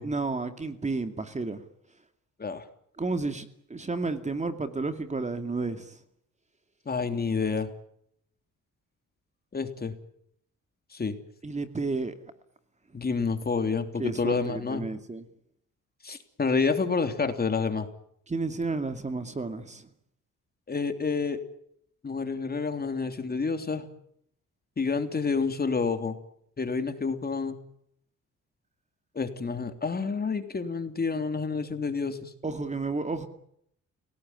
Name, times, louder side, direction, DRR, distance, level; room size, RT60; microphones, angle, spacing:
voice 1, 0.0-1.6 3.0-6.0 11.4-12.2 14.0-15.2 18.3-19.9 32.4-33.3, right 3 dB, 25° right, 9 dB, 2.4 m, -31 dB
voice 2, 6.8-7.7 9.5-9.9 10.9-11.2 12.9-14.9 16.0-17.9 20.7-21.4 22.0-23.9 24.8-26.2 26.6-27.5 29.1-32.3, left 4 dB, 30° left, 8 dB, 3.2 m, -29 dB
29.0 x 18.0 x 9.7 m, 0.74 s
cardioid pair, 90°, 30 cm